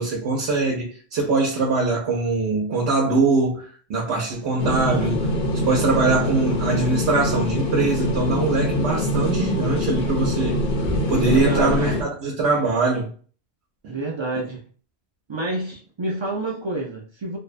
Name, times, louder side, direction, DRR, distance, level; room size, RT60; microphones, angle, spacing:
voice 1, 0.0-3.6 3.9-5.3 5.5-10.6 11.1-13.1 13.8-13.9, right 3 dB, 75° right, 0.9 m, -22 dB
sound 1, 4.6-12.0, left 1 dB, 60° left, 0.7 m, -24 dB
voice 2, 11.2-11.9 13.9-14.6 15.3-17.4, right 2 dB, 50° right, 0.3 m, -28 dB
2.6 x 2.1 x 2.4 m
omnidirectional pair, 1.1 m